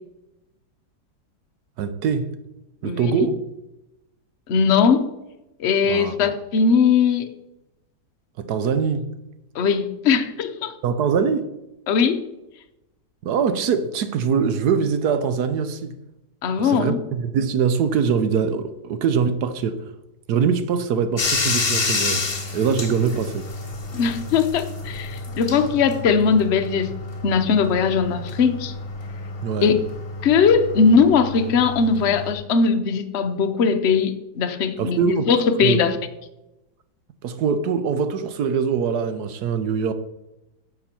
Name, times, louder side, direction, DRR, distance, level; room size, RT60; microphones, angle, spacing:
voice 1, 1.8-2.3 2.8-3.4 5.9-6.2 8.4-9.1 10.8-11.5 13.2-16.0 16.6-19.8 20.3-22.3 22.5-23.4 29.4-29.7 34.8-35.8 37.2-39.9, right 6 dB, 70° right, 1.2 m, -23 dB
voice 2, 4.5-5.1 5.6-7.3 9.5-10.7 11.9-12.2 16.4-17.0 23.9-26.9 27.2-28.7 29.6-29.7 30.2-35.9, left 5 dB, 50° left, 0.9 m, -19 dB
Bathtub (filling or washing), 21.2-32.3, left 3 dB, 35° left, 1.3 m, -29 dB
10.0 x 6.8 x 4.3 m
omnidirectional pair, 1.9 m